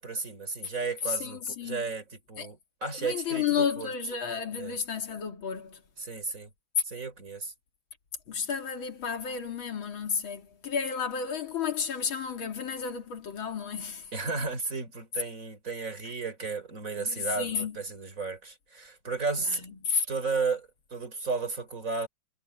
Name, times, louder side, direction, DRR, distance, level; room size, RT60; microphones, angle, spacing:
voice 1, 0.0-3.9 4.6-4.8 6.0-6.5 6.8-7.5 14.1-19.7 20.1-22.1, right 4 dB, 40° right, 3.9 m, -33 dB
voice 2, 1.1-1.9 2.4-2.5 3.0-5.8 8.3-14.1 17.0-17.8 19.5-20.1, left 6 dB, 85° left, 2.9 m, -32 dB
omnidirectional pair, 2.1 m